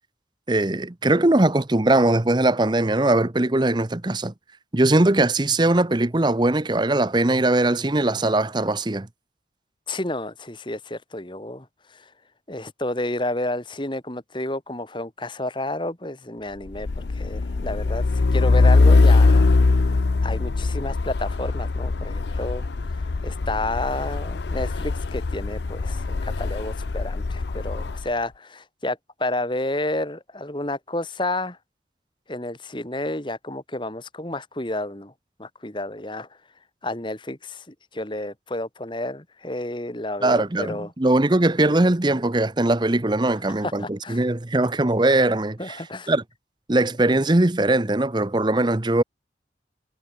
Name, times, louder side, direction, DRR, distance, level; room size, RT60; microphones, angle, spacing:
voice 1, 0.5-4.3 4.7-9.1 40.2-45.8 46.1-46.2 46.7-49.0, right 2 dB, 25° right, 0.8 m, -20 dB
voice 2, 9.9-12.1 12.5-19.5 19.8-19.9 20.2-22.7 23.2-31.6 32.3-35.1 35.4-36.3 36.8-40.9 43.4-44.2 45.6-46.1, left 1 dB, 25° left, 2.4 m, -31 dB
Truck, 16.7-28.1, left 3 dB, 75° left, 0.6 m, -21 dB
head